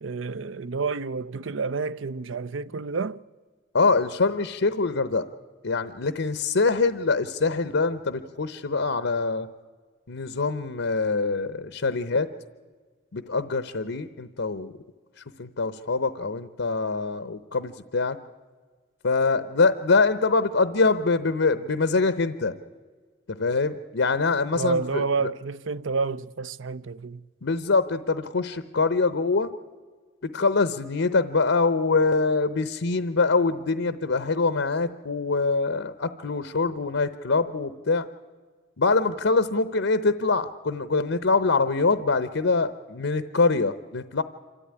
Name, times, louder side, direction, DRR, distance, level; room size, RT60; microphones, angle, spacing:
voice 1, 0.0-3.2 24.5-27.2, right 4 dB, 80° right, 0.6 m, -29 dB
voice 2, 3.7-5.3 5.6-9.5 10.1-12.3 13.1-14.7 15.4-18.2 19.0-22.5 23.3-25.0 27.4-29.5 30.3-38.0 38.8-44.2, left 3 dB, 85° left, 0.8 m, -24 dB
26.5 x 14.0 x 9.7 m
head